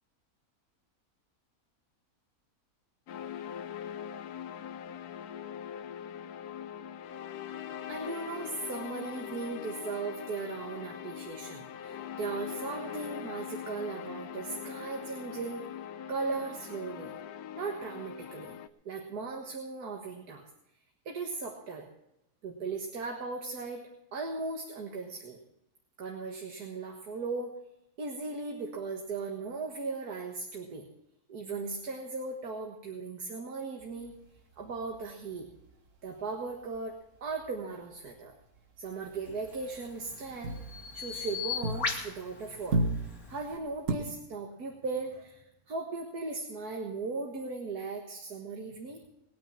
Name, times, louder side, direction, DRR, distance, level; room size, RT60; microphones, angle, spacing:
sound 1, 3.1-18.7, left 9 dB, 90° left, 1.2 m, -42 dB
voice 1, 7.9-15.6 16.1-17.1 17.5-18.5 18.9-20.5 21.1-21.9 22.4-25.4 26.0-27.5 28.0-30.9 31.3-34.1 34.6-35.5 36.0-38.4 38.8-40.6 40.9-42.8 43.3-49.0, right 4 dB, 85° right, 2 dB, 2.1 m, -37 dB
sound 2, 33.8-37.5 37.8-38.1 38.4-42.3 42.5-43.9, right 2 dB, 55° right, 1.9 m, -36 dB
Bird vocalization bird call bird song, 39.4-43.6, left 5 dB, 70° left, 2.4 m, -39 dB
20.0 x 9.5 x 5.7 m, 0.83 s
omnidirectional pair, 1.6 m